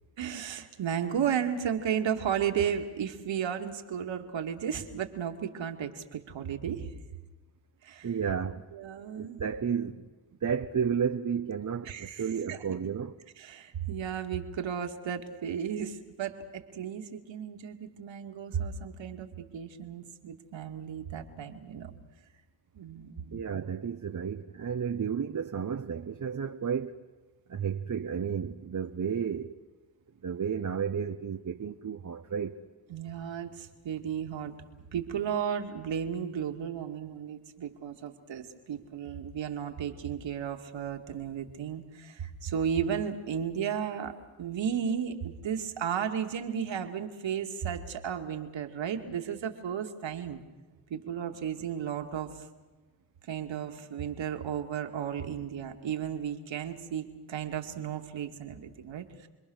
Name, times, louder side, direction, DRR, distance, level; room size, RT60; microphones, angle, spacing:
voice 1, 0.2-6.9 7.8-8.1 8.7-9.4 11.9-12.7 13.4-21.9 22.7-23.4 32.9-34.5 34.9-50.4 50.9-52.5 53.3-59.3, right 8 dB, 65° right, 2.6 m, -34 dB
voice 2, 8.0-8.6 9.2-10.0 10.4-13.1 23.3-26.9 27.5-29.5 30.2-32.6, right 7 dB, 40° right, 1.2 m, -32 dB
30.0 x 22.0 x 6.5 m
supercardioid pair, 50°, 49 cm